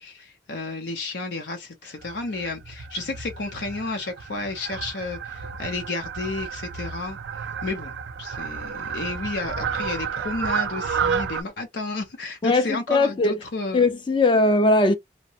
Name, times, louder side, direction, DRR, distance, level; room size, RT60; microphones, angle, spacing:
voice 1, 0.0-7.2 7.6-7.9 8.2-13.8, left 3 dB, 75° left, 0.6 m, -31 dB
Fowl, 2.0-11.4, right 6 dB, 85° right, 0.4 m, -31 dB
voice 2, 12.4-13.4 13.7-14.9, left 2 dB, 25° left, 0.4 m, -19 dB
2.8 x 2.1 x 2.7 m
head